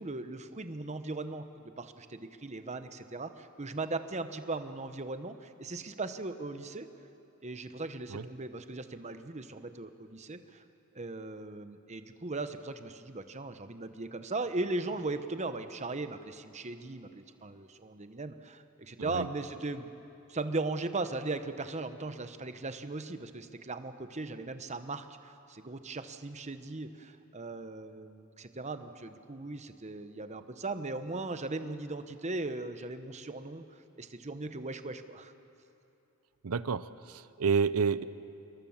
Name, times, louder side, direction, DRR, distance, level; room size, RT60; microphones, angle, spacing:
voice 1, 0.0-6.9 7.4-10.6 10.9-19.9 20.3-35.3, right 2 dB, 30° right, 9 dB, 1.0 m, -38 dB
voice 2, 36.4-38.0, right 5 dB, 85° right, 16 dB, 0.7 m, -30 dB
27.0 x 22.5 x 7.3 m, 2.8 s
head